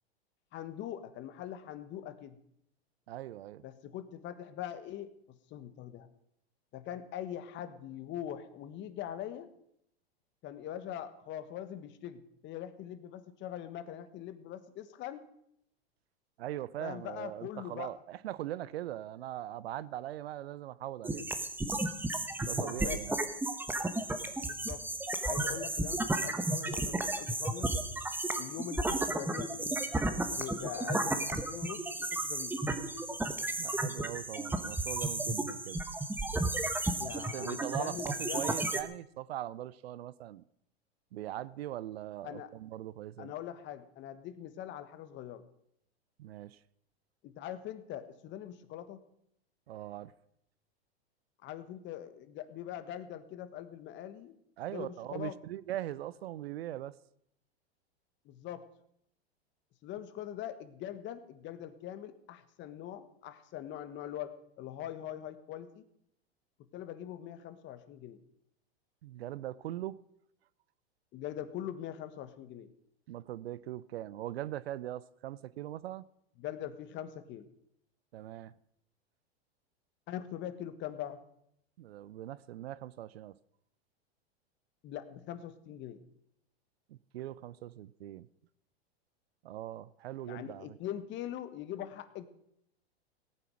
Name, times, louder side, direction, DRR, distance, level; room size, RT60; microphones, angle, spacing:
voice 1, 0.5-2.4 3.6-6.1 6.7-9.5 10.4-15.3 16.8-17.9 22.6-23.0 24.4-24.8 25.2-27.7 28.4-29.9 30.3-32.6 37.0-38.6 42.2-42.5 43.2-45.4 47.2-49.0 51.4-54.4 54.7-55.4 58.2-58.6 59.8-65.8 66.7-68.2 71.1-72.7 76.4-77.5 80.1-81.2 84.8-86.0 90.2-92.3, left 11 dB, 35° left, 1.4 m, -42 dB
voice 2, 3.1-3.6 16.4-21.3 22.4-23.2 33.6-35.8 37.1-40.4 41.1-43.3 46.2-46.6 49.7-50.1 54.6-56.9 69.0-70.0 73.1-76.1 78.1-78.5 81.8-83.3 86.9-88.3 89.4-90.8, right 13 dB, 75° right, 0.6 m, -41 dB
sound 1, 21.0-38.8, right 2 dB, 5° right, 1.1 m, -33 dB
18.0 x 9.1 x 6.3 m
hypercardioid pair, 110°, 32 cm